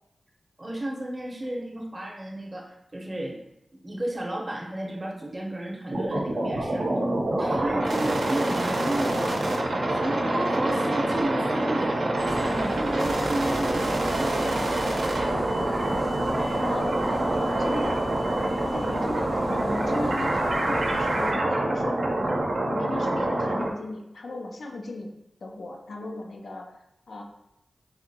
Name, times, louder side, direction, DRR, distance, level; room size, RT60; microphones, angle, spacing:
voice 1, 0.6-3.4 3.8-6.9 7.4-9.4 9.9-14.6 16.3-16.6, right 1 dB, 35° right, -1 dB, 0.7 m, -33 dB
sound 1, 5.9-23.7, right 1 dB, 85° right, 0.6 m, -26 dB
sound 2, 12.2-21.3, equal, 15° left, 0.6 m, -40 dB
voice 2, 16.6-17.9 18.4-22.0 22.2-22.3 22.7-25.1 25.4-27.2, left 2 dB, 85° left, 1 dB, 0.4 m, -36 dB
4.1 x 2.5 x 2.7 m, 0.85 s
cardioid pair, 55°, 0 cm